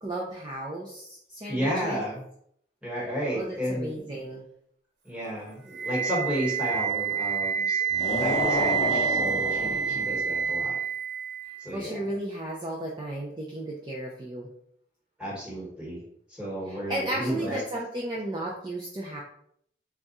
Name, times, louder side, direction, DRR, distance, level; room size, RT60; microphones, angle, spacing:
voice 1, 0.0-2.0 3.3-4.5 11.7-14.5 16.7-19.2, right 1 dB, 25° right, -4 dB, 0.5 m, -34 dB
voice 2, 1.4-2.2 2.8-4.0 5.0-7.8 8.2-10.8 11.6-12.1 15.2-16.0 16.3-17.6, equal, 5° right, -5 dB, 1.3 m, -32 dB
Wind instrument woodwind instrument, 5.7-11.7, right 8 dB, 90° right, 0.8 m, -28 dB
sound 1, 7.9-10.3, left 2 dB, 45° left, 0.7 m, -30 dB
3.5 x 2.4 x 4.1 m, 0.68 s
head